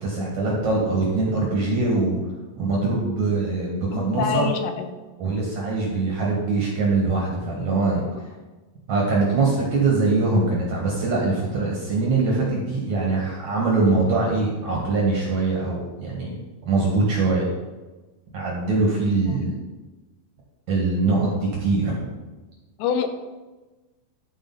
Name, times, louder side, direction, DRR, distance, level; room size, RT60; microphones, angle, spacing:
voice 1, 0.0-2.2 2.6-4.5 5.2-8.0 8.9-16.3 16.7-17.5 18.3-19.5 20.7-22.1, right 3 dB, 55° right, -3 dB, 2.2 m, -22 dB
voice 2, 3.9-4.9 8.2-8.3 19.3-19.4 22.8-23.1, left 7 dB, 90° left, 7 dB, 3.0 m, -26 dB
13.0 x 5.0 x 4.0 m, 1.2 s
omnidirectional pair, 5.0 m